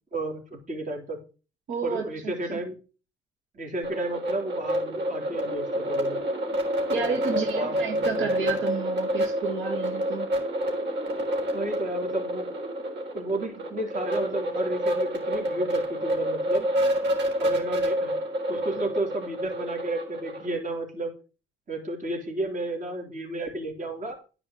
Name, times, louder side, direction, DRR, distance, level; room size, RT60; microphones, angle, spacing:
voice 1, 0.1-1.2 1.8-2.7 3.5-6.2 6.9-8.3 11.5-12.5 13.1-16.7 17.4-18.2 18.5-21.1 21.7-24.2, right 2 dB, 40° right, 1 dB, 3.9 m, -32 dB
voice 2, 1.7-2.6 6.9-10.3, right 5 dB, 80° right, 2 dB, 2.1 m, -31 dB
sound 1, 3.8-20.5, equal, 60° right, 4.1 m, -28 dB
10.0 x 4.9 x 8.0 m, 0.35 s
cardioid pair, 90°, 20 cm